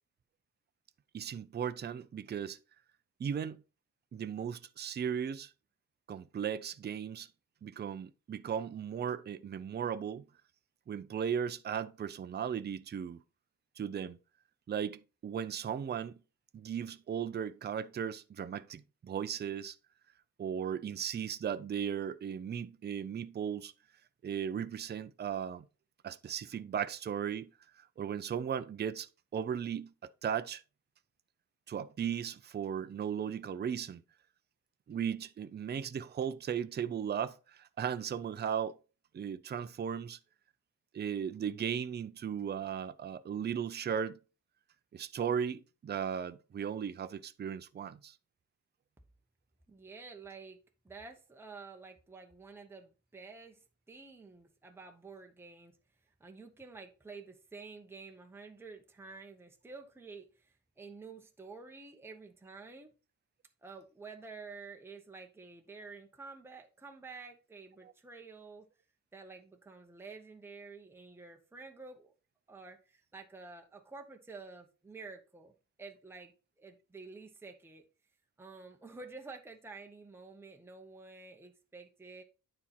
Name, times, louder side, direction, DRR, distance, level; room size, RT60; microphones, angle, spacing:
voice 1, 1.1-2.6 3.2-3.6 4.1-5.5 6.1-7.3 7.6-10.2 10.9-13.2 13.8-14.2 14.7-16.2 16.5-19.8 20.4-23.7 24.2-25.6 26.0-27.5 27.8-30.6 31.7-34.0 34.9-38.7 39.1-40.2 40.9-44.2 44.9-48.2, right 8 dB, 30° right, 0.4 m, -36 dB
voice 2, 49.7-50.6 50.8-55.8 56.2-62.9 63.6-68.7 69.1-72.1 72.5-75.5 75.8-77.9 78.4-82.2, right 4 dB, 5° right, 0.9 m, -50 dB
9.4 x 4.3 x 4.2 m
wide cardioid pair, 155°, 34 cm